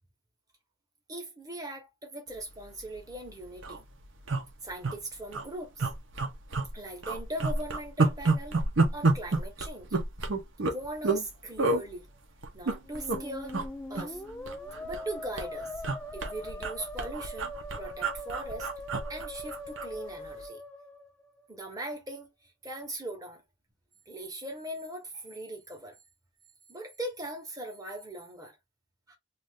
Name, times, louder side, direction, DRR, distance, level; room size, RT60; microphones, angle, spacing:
voice 1, 1.1-3.8 4.6-5.9 6.7-8.6 8.9-10.0 10.6-12.1 12.5-13.6 13.9-14.2 14.8-15.8 16.1-18.7 19.1-20.6 21.5-23.4 24.1-26.0 26.7-28.6 29.1-29.2, right 1 dB, 15° right, 0.9 m, -40 dB
sound 1, 2.8-3.0 3.3-3.4 3.5-3.8 4.3-4.9 5.3-5.4 5.8-6.7 7.0-11.2 11.6-11.8 12.4-13.2 13.5-13.7 13.9-15.1 15.4-19.9 20.3-20.4, right 3 dB, 60° right, 0.7 m, -29 dB
Musical instrument, 12.8-21.6, left 1 dB, 5° left, 0.3 m, -42 dB
2.6 x 2.4 x 3.4 m
head